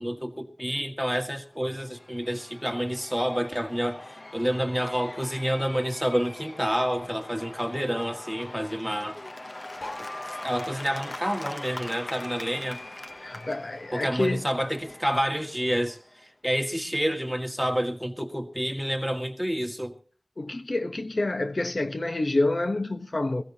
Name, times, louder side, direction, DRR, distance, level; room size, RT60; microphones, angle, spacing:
voice 1, 0.0-9.2 10.0-10.1 10.4-12.8 13.9-19.9, equal, ahead, 2.0 m, -29 dB
Cheering / Applause / Crowd, 1.5-16.2, left 1 dB, 35° left, 0.8 m, -42 dB
sound 1, 9.7-12.5 12.8-14.4 14.8-14.9 15.1-15.2 15.4-15.8 16.6-16.7, left 1 dB, 85° left, 4.4 m, -47 dB
voice 2, 13.2-14.4 20.4-23.4, left 2 dB, 60° left, 1.1 m, -28 dB
21.5 x 16.0 x 2.9 m
wide cardioid pair, 60°, 0 cm